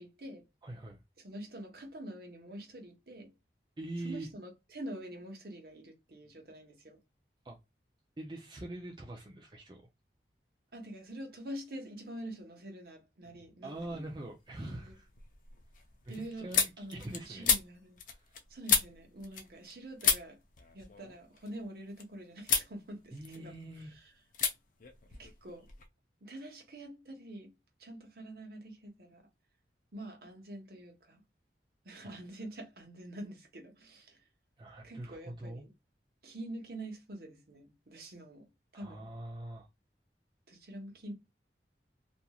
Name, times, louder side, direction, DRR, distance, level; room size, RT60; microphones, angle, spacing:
voice 1, 0.0-0.4 1.2-3.3 4.0-7.0 10.7-14.0 14.6-14.9 16.1-16.5 16.8-18.0 18.5-20.4 20.7-23.5 23.9-24.1 25.1-25.7 26.2-27.5 27.8-29.3 29.9-31.2 31.8-34.2 34.8-35.7 36.2-39.1 40.5-41.1, right 1 dB, 55° right, 1.0 m, -46 dB
voice 2, 0.6-1.0 3.8-4.3 7.4-7.6 8.2-9.8 13.6-15.1 16.0-17.5 18.1-18.3 23.1-23.9 32.0-32.2 34.6-35.7 38.7-39.7, right 1 dB, 25° right, 0.5 m, -43 dB
sound 1, 13.8-14.3 14.7-19.7 20.0-22.0 22.4-22.7 23.1-23.8 24.3-24.5 24.8-25.9, left 6 dB, 45° left, 0.5 m, -33 dB
2.9 x 2.6 x 2.3 m
head